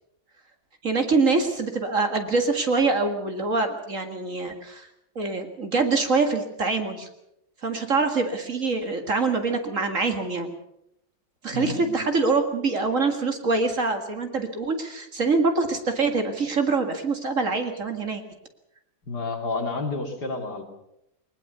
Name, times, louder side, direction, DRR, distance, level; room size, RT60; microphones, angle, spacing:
voice 1, 0.8-4.9 5.2-7.1 7.6-10.5 11.4-18.2, right 3 dB, 45° right, 6 dB, 2.2 m, -24 dB
voice 2, 11.5-12.0 19.1-20.6, left 3 dB, 60° left, 3 dB, 3.2 m, -30 dB
20.5 x 20.5 x 6.8 m, 0.82 s
omnidirectional pair, 2.0 m